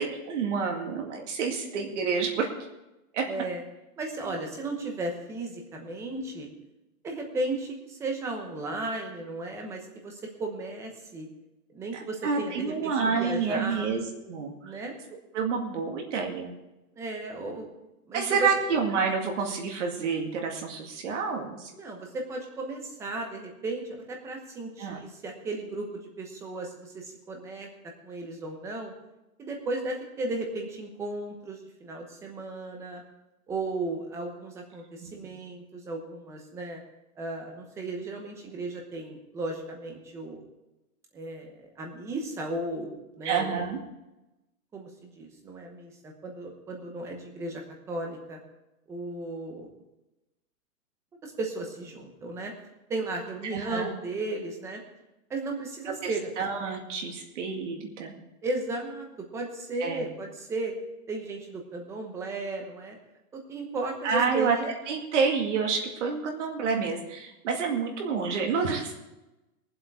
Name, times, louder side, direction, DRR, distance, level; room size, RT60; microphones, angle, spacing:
voice 1, 0.0-2.5 3.1-3.3 4.1-4.4 12.2-14.8 15.3-16.5 18.1-21.8 24.8-25.0 35.0-35.1 43.2-43.8 53.5-53.9 56.0-56.1 56.4-58.1 59.8-60.0 64.0-64.6 64.9-68.9, right 5 dB, 50° right, 1 dB, 2.2 m, -28 dB
voice 2, 3.3-3.6 4.0-6.5 7.0-11.3 11.7-13.9 14.6-15.0 17.0-17.7 18.1-18.5 21.8-25.9 26.2-27.7 28.0-28.9 29.4-33.0 33.5-36.8 37.2-40.4 41.1-43.6 44.7-47.6 47.9-48.4 48.9-49.7 51.2-52.5 52.9-54.8 55.3-56.3 58.4-59.1 59.3-60.7 61.1-63.0 63.3-64.7, right 2 dB, 5° right, 2 dB, 0.9 m, -35 dB
21.0 x 7.7 x 4.7 m, 1.0 s
hypercardioid pair, 170°, 45 cm